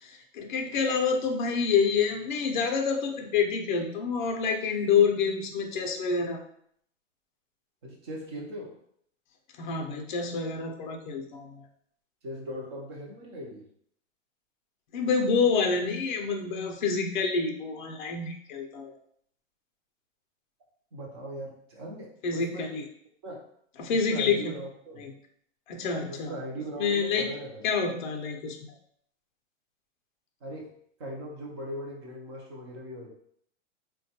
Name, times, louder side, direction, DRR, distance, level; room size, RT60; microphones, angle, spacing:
voice 1, 0.0-6.4 9.6-11.6 14.9-18.9 22.2-22.8 23.8-24.5 25.0-25.1 25.7-26.3 26.8-27.3 27.6-28.6, left 5 dB, 40° left, 3 dB, 0.5 m, -27 dB
voice 2, 7.8-8.7 12.2-13.6 20.9-22.7 23.2-23.4 23.9-25.1 26.1-27.6 30.4-30.7 31.0-33.1, right 1 dB, 20° right, -2 dB, 0.5 m, -39 dB
3.8 x 2.2 x 2.7 m, 0.67 s
supercardioid pair, 165°, 38 cm